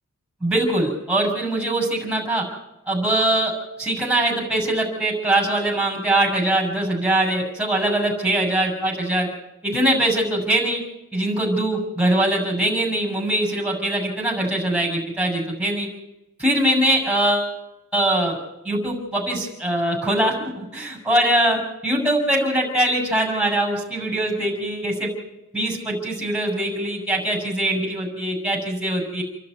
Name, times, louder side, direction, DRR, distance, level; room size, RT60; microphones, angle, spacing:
voice 1, 0.4-2.5 2.9-3.5 3.8-9.3 9.6-10.8 11.1-15.9 16.4-17.5 17.9-18.4 18.6-25.1 25.5-29.2, right 1 dB, 5° right, 0 dB, 6.9 m, -22 dB
29.0 x 11.5 x 9.5 m, 0.95 s
head